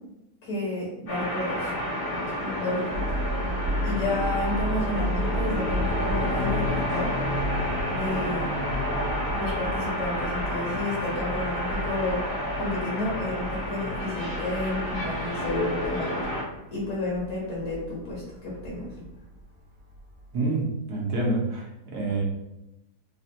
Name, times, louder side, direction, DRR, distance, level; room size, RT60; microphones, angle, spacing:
voice 1, 0.4-1.7 2.4-3.0 3.8-7.1 7.8-8.5 9.3-12.2 12.5-16.3 16.7-18.9, left 2 dB, 80° left, -5 dB, 1.7 m, -31 dB
sound 1, 1.1-16.4, left 1 dB, 40° left, 0.9 m, -30 dB
sound 2, 2.9-20.4, equal, 55° right, 0.7 m, -34 dB
voice 2, 20.3-22.2, right 2 dB, 70° right, -2 dB, 1.3 m, -27 dB
4.1 x 2.1 x 2.7 m, 0.89 s
omnidirectional pair, 1.7 m